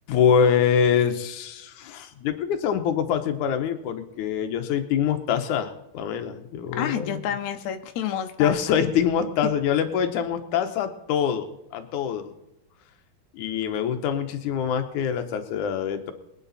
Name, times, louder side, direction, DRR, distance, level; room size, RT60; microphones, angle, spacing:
voice 1, 0.1-7.2 8.4-12.3 13.3-16.1, left 8 dB, 75° left, 7 dB, 1.9 m, -24 dB
voice 2, 6.7-8.8 9.4-9.5, left 9 dB, 90° left, 6 dB, 1.6 m, -29 dB
23.0 x 9.3 x 4.1 m, 0.89 s
omnidirectional pair, 4.8 m